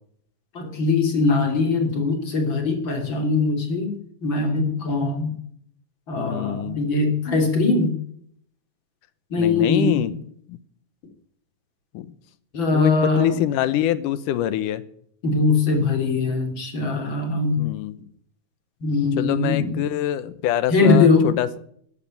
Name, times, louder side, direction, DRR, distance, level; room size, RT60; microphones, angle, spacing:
voice 1, 0.5-4.0 4.2-5.3 6.1-8.0 9.3-10.1 12.5-13.4 15.2-17.7 18.8-19.8 20.7-21.3, left 3 dB, 35° left, 4 dB, 3.5 m, -21 dB
voice 2, 6.2-6.8 9.4-10.1 10.5-10.6 11.9-12.1 12.7-14.8 17.6-17.9 19.2-21.6, left 12 dB, 75° left, 16 dB, 2.3 m, -25 dB
13.5 x 11.0 x 9.1 m, 0.66 s
omnidirectional pair, 3.9 m